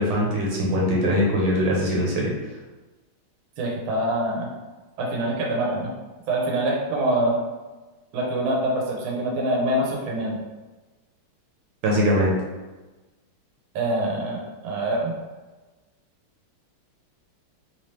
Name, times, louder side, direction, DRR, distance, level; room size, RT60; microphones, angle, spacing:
voice 1, 0.0-2.3 11.8-12.3, equal, 90° right, -3 dB, 1.6 m, -21 dB
voice 2, 3.6-4.5 5.0-5.9 6.3-7.4 8.1-10.4 13.7-15.1, right 1 dB, 70° right, -2 dB, 1.5 m, -25 dB
3.6 x 2.9 x 3.2 m, 1.2 s
omnidirectional pair, 2.3 m